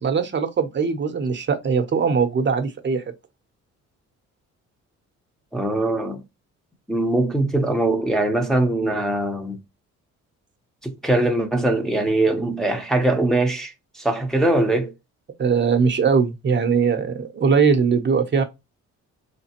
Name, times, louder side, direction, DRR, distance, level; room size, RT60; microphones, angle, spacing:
voice 1, 0.0-3.0 15.4-18.4, right 5 dB, 40° right, 0.7 m, -20 dB
voice 2, 5.5-6.2 6.9-9.6 10.8-14.9, right 2 dB, ahead, 0.7 m, -22 dB
3.6 x 3.2 x 2.9 m
cardioid pair, 90°, 30 cm